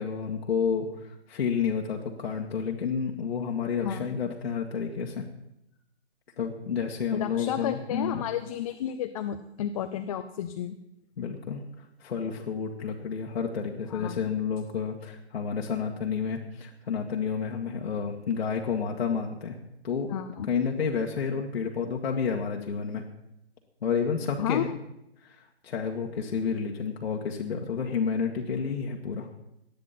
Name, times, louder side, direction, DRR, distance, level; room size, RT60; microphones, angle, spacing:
voice 1, 0.0-5.2 6.4-8.2 11.2-19.6 19.8-20.1 20.5-23.0 23.8-24.7 25.2-25.4 25.6-29.3, left 6 dB, 65° left, -1 dB, 1.9 m, -30 dB
voice 2, 7.1-10.7 13.9-14.2 20.1-20.5 24.4-24.8, left 10 dB, 35° left, 8 dB, 0.7 m, -32 dB
19.0 x 12.0 x 4.2 m, 0.84 s
figure-of-eight pair, 135°, 33 cm